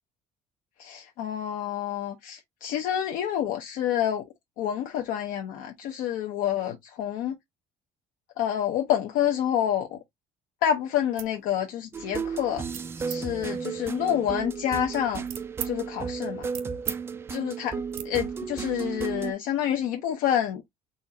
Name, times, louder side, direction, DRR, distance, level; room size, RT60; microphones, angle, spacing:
voice 1, 0.8-4.2 4.6-7.3 8.4-10.0 10.6-12.6 13.1-15.2 15.6-16.5 17.3-20.6, left 10 dB, 65° left, 0.8 m, -28 dB
sound 1, 11.0-11.4 11.8-12.2 12.7-13.2 13.9-15.7 16.1-17.0 17.3-17.5 17.9-18.1, right 12 dB, 70° right, 0.9 m, -39 dB
sound 2, 11.9-19.3, right 6 dB, 15° right, 0.3 m, -34 dB
4.3 x 2.4 x 4.1 m
cardioid pair, 175°, 15 cm